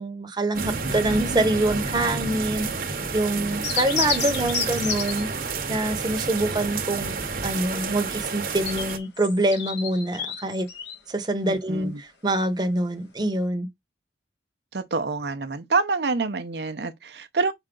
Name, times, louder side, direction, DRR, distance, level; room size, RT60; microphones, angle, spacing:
voice 1, 0.0-2.7 3.1-5.3 5.7-7.2 7.4-10.7 11.1-13.7, right 1 dB, 25° right, 0.9 m, -25 dB
sound 1, 0.5-9.0, right 4 dB, 50° right, 1.0 m, -30 dB
voice 2, 3.4-3.7 11.4-12.0 14.7-17.5, right 4 dB, 70° right, 0.7 m, -27 dB
sound 2, 3.6-5.2 8.3-11.0, left 6 dB, 75° left, 1.6 m, -30 dB
5.4 x 5.0 x 3.8 m
head